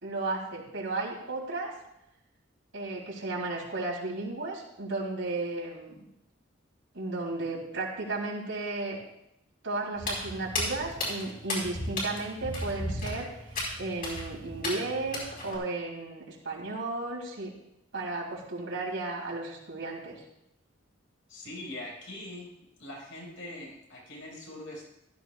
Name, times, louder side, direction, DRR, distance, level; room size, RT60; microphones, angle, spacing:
voice 1, 0.0-1.7 2.7-5.9 6.9-9.0 9.6-17.5 17.9-20.2, right 2 dB, 85° right, -3 dB, 3.4 m, -34 dB
Walk footsteps, 10.0-15.6, left 1 dB, 45° left, 4.7 m, -35 dB
voice 2, 21.3-22.5 22.8-24.9, left 1 dB, 80° left, -3 dB, 5.0 m, -42 dB
15.5 x 13.0 x 2.4 m, 0.83 s
head